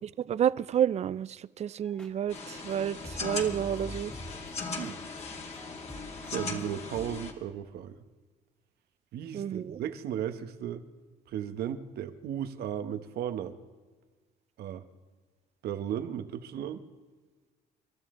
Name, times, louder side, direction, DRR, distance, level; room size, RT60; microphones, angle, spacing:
voice 1, 0.2-4.1 9.3-9.8, right 9 dB, 40° right, 0.5 m, -30 dB
sound 1, 1.8-2.7 3.0-7.4, equal, 5° left, 2.1 m, -47 dB
sound 2, 2.3-7.3, left 4 dB, 40° left, 2.4 m, -39 dB
voice 2, 6.3-7.9 9.1-10.8 11.3-13.5 14.6-14.8 15.6-16.8, right 10 dB, 70° right, 1.3 m, -35 dB
29.0 x 12.5 x 3.8 m
cardioid pair, 110°, 17 cm